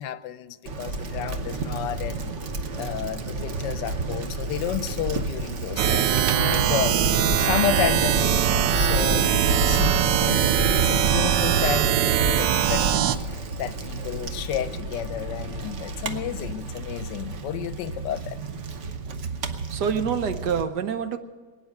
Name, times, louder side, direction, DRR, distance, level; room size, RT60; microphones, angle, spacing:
voice 1, 0.0-2.3 2.8-9.3 9.6-18.4, left 11 dB, 85° left, 14 dB, 1.3 m, -31 dB
Bicycle, 0.7-20.6, right 2 dB, 50° right, 1.1 m, -30 dB
sound 1, 5.8-13.2, right 10 dB, 90° right, 1.3 m, -22 dB
voice 2, 19.7-21.2, right 7 dB, 70° right, 10 dB, 1.5 m, -27 dB
22.0 x 9.4 x 6.4 m, 1.5 s
omnidirectional pair, 1.9 m